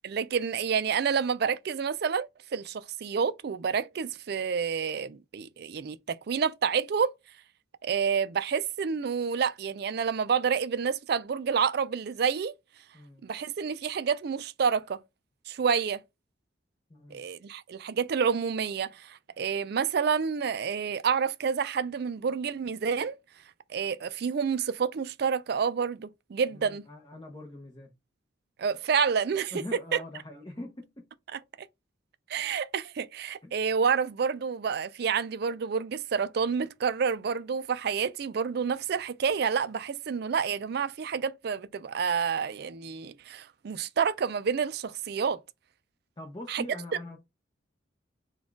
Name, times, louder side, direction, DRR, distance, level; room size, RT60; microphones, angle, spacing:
voice 1, 0.0-7.1 7.8-12.5 13.2-15.0 15.5-16.0 17.1-23.2 23.7-26.8 28.6-30.0 31.3-31.4 32.3-45.4 46.5-46.6, right 6 dB, 55° right, 0.4 m, -29 dB
voice 2, 16.9-17.2 26.5-27.9 29.5-31.1 33.4-33.6 46.2-47.2, left 1 dB, 25° left, 0.7 m, -43 dB
4.2 x 2.3 x 4.4 m
head